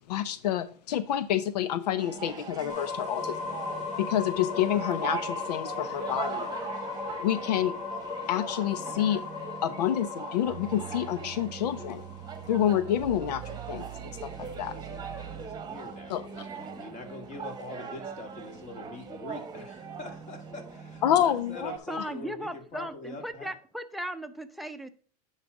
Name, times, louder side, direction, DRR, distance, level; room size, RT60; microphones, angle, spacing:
voice 1, 0.1-3.5 4.0-6.5 7.2-7.8 8.3-9.2 9.6-12.0 12.5-14.7 16.1-16.2 21.0-21.7, left 11 dB, 85° left, 0.6 m, -28 dB
sound 1, 2.0-21.8, right 6 dB, 20° right, 1.1 m, -41 dB
sound 2, 2.7-14.5, left 5 dB, 60° left, 2.9 m, -38 dB
sound 3, 10.4-15.9, right 17 dB, 55° right, 0.6 m, -44 dB
voice 2, 14.3-23.6, left 2 dB, 35° left, 2.2 m, -44 dB
voice 3, 21.9-24.9, right 1 dB, ahead, 0.7 m, -37 dB
9.7 x 4.1 x 4.7 m
supercardioid pair, 115°, 20 cm